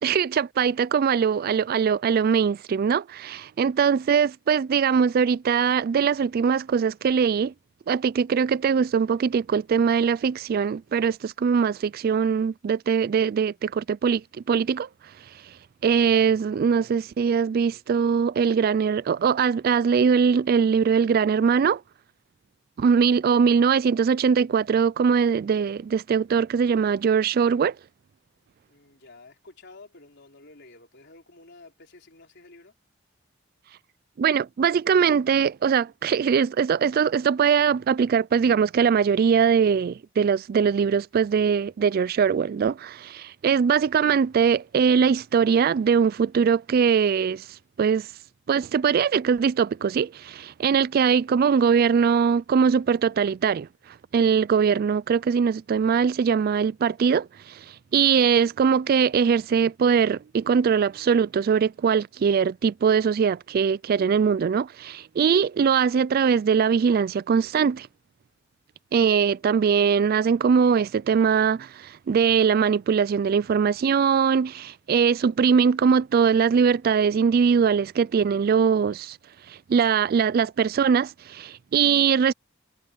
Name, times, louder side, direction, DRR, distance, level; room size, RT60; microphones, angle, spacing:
voice 1, 0.0-7.5 7.9-14.2 14.5-14.9 15.8-21.8 22.8-27.7 34.2-47.4 47.8-48.1 48.5-53.7 54.1-57.6 57.9-67.9 68.9-79.2 79.5-82.3, right 6 dB, 50° right, 0.3 m, -21 dB
voice 2, 28.7-32.7, left 2 dB, 60° left, 4.5 m, -51 dB
head